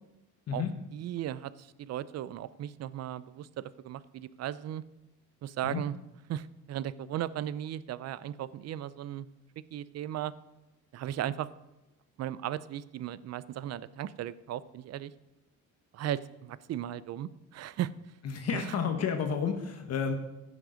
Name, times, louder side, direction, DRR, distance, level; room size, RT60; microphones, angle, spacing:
voice 1, 0.9-4.8 5.4-5.9 6.3-9.3 9.7-10.3 10.9-11.5 12.2-15.1 15.9-17.9 18.5-18.8, right 11 dB, 55° right, 17 dB, 0.5 m, -36 dB
voice 2, 18.2-20.1, left 6 dB, 50° left, 5 dB, 1.2 m, -31 dB
15.5 x 6.5 x 5.1 m, 0.96 s
cardioid pair, 125°, 31 cm